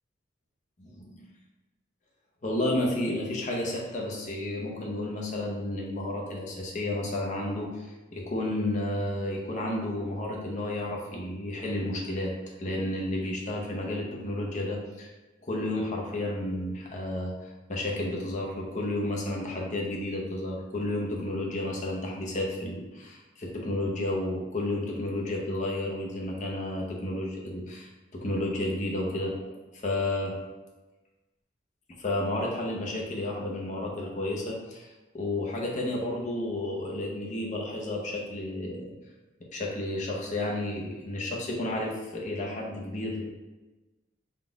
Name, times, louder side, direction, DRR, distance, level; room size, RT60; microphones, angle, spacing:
voice 1, 0.8-1.3 2.4-15.1 15.4-30.4 32.0-34.9 35.1-38.9 39.5-43.3, left 1 dB, 40° left, -1 dB, 0.7 m, -32 dB
3.7 x 2.4 x 3.9 m, 1.1 s
head